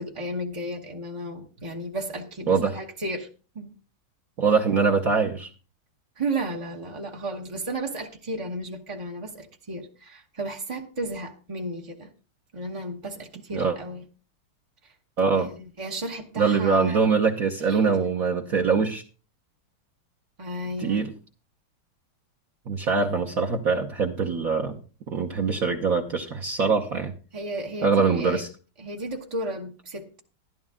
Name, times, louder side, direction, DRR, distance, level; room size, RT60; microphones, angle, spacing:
voice 1, 0.0-3.3 3.5-3.7 6.2-12.1 12.5-14.0 14.8-14.9 15.3-17.0 17.6-18.0 20.4-21.1 27.3-28.4 28.8-30.2, right 1 dB, 30° right, 0.6 m, -33 dB
voice 2, 4.4-5.5 13.5-13.8 15.2-15.5 16.4-19.0 20.8-21.1 22.7-24.8 25.1-27.1 27.8-28.5, right 5 dB, 55° right, 1.1 m, -23 dB
12.5 x 11.5 x 3.6 m
omnidirectional pair, 2.3 m